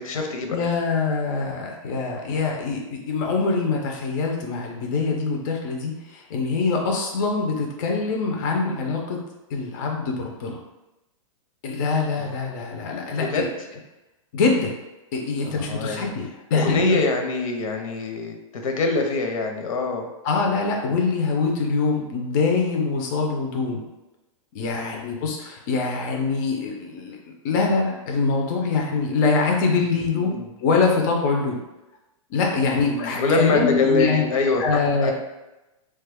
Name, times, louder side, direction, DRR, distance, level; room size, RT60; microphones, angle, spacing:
voice 1, 0.0-0.6 12.2-12.3 13.3-13.5 15.4-16.1 16.5-18.4 18.6-20.1 24.6-25.2 30.3-30.5 32.6-35.1, left 3 dB, 75° left, 3 dB, 0.7 m, -24 dB
voice 2, 0.5-9.2 9.5-10.6 11.6-13.5 14.3-14.7 15.1-17.0 20.2-23.8 24.5-31.6 32.3-34.3 34.6-35.1, left 4 dB, 35° left, 0 dB, 0.4 m, -24 dB
3.1 x 2.2 x 3.4 m, 0.99 s
hypercardioid pair, 160°, 18 cm